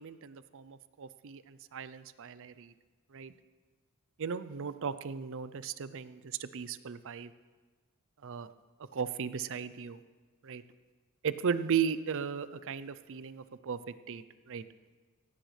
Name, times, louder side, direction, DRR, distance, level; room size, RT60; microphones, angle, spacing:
voice 1, 0.0-2.7 3.1-3.3 4.2-7.3 8.2-8.5 8.9-10.0 10.4-10.6 11.2-13.8 14.1-14.6, right 7 dB, 60° right, 14 dB, 0.5 m, -36 dB
17.0 x 16.0 x 3.3 m, 1.4 s
head